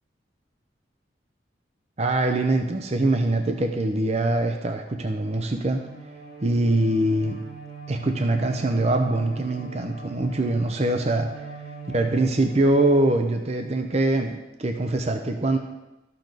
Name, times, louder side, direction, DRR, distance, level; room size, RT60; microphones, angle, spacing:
voice 1, 2.0-5.8 6.4-7.4 7.9-11.3 11.9-15.6, right 2 dB, 35° right, 5 dB, 0.6 m, -23 dB
Bowed string instrument, 5.3-13.7, right 4 dB, 70° right, 1.7 m, -42 dB
13.0 x 6.9 x 4.0 m, 1.0 s
head